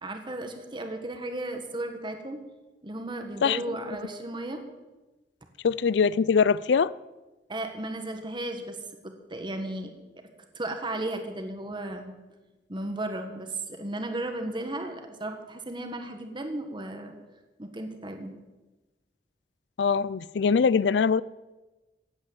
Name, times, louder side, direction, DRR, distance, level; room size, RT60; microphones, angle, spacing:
voice 1, 0.0-2.4 2.8-4.6 7.5-8.8 9.0-9.9 10.2-10.3 10.5-12.2 12.7-17.1 17.6-18.3, right 1 dB, 25° right, 1.5 m, -35 dB
voice 2, 3.4-3.8 5.6-6.9 19.8-21.2, left 6 dB, 75° left, 0.4 m, -23 dB
15.5 x 8.8 x 8.4 m
head